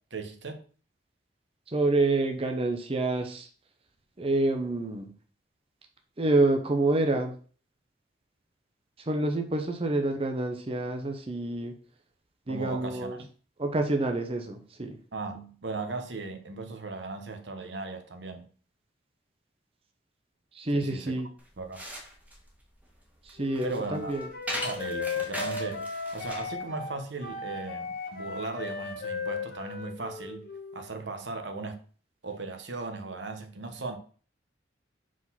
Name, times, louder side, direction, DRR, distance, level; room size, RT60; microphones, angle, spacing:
voice 1, 0.1-0.6 12.5-13.1 15.1-18.5 20.7-21.2 21.6-21.8 23.6-24.2 24.6-27.9 28.1-30.5 30.7-31.8 32.2-34.0, right 3 dB, 75° right, 1.0 m, -37 dB
voice 2, 1.7-3.5 4.2-5.1 6.2-7.3 9.0-11.7 12.5-13.2 13.6-15.0 20.5-21.3 23.2-24.3, right 2 dB, 35° right, 0.7 m, -27 dB
sound 1, 21.4-26.6, equal, 10° right, 1.4 m, -39 dB
Wind instrument woodwind instrument, 23.4-30.8, left 4 dB, 60° left, 1.4 m, -36 dB
5.0 x 4.1 x 5.5 m
head